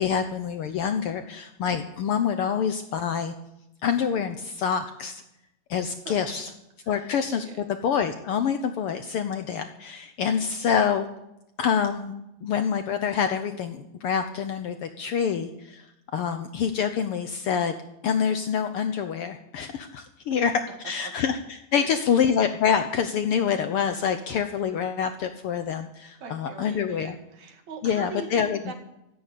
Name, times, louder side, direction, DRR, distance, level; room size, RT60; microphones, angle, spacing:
voice 1, 0.0-3.3 3.8-5.2 5.7-6.5 6.9-11.0 11.6-12.1 12.4-15.9 16.1-17.8 18.0-20.5 20.8-21.4 21.7-27.1 27.8-28.7, left 7 dB, 70° left, 8 dB, 1.4 m, -26 dB
voice 2, 6.8-7.7 21.0-21.1 21.7-22.1 26.2-28.7, right 5 dB, 70° right, 4 dB, 3.4 m, -41 dB
13.5 x 11.0 x 8.5 m, 0.86 s
omnidirectional pair, 3.4 m